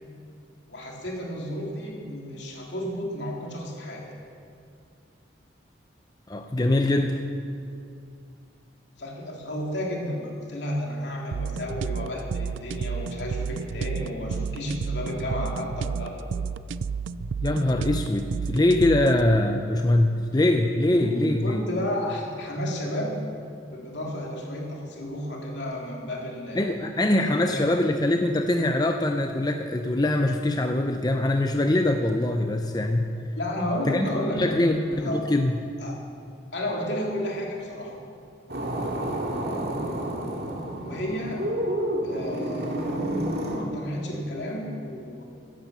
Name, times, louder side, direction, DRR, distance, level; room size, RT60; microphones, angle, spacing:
voice 1, 0.7-4.1 9.0-16.5 21.0-23.2 23.6-27.6 33.4-34.5 35.0-35.2 35.8-35.9 36.5-38.0 40.8-41.4 42.0-45.2, equal, 70° left, -1 dB, 2.8 m, -32 dB
voice 2, 6.3-7.2 17.4-21.6 26.5-33.1 33.8-34.1 34.4-35.5, left 1 dB, 20° left, 5 dB, 0.5 m, -23 dB
sound 1, 11.3-19.3, right 5 dB, 90° right, 0.4 m, -31 dB
sound 2, 38.5-43.6, right 1 dB, 55° right, 2.3 m, -29 dB
15.0 x 10.0 x 6.8 m, 2.4 s
head